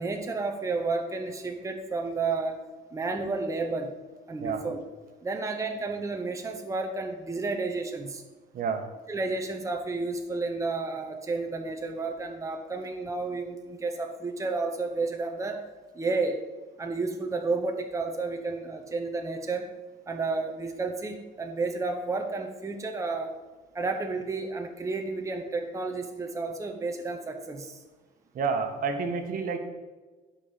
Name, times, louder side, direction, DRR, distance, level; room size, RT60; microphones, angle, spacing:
voice 1, 0.0-2.6 2.9-3.9 4.3-4.8 5.2-8.2 9.1-15.6 15.9-16.4 16.8-19.7 20.1-23.4 23.7-27.8, right 3 dB, 20° right, 3 dB, 1.1 m, -31 dB
voice 2, 8.5-8.9 28.3-29.6, right 5 dB, 55° right, 5 dB, 1.4 m, -29 dB
11.5 x 5.7 x 5.1 m, 1.3 s
cardioid pair, 110°, 17 cm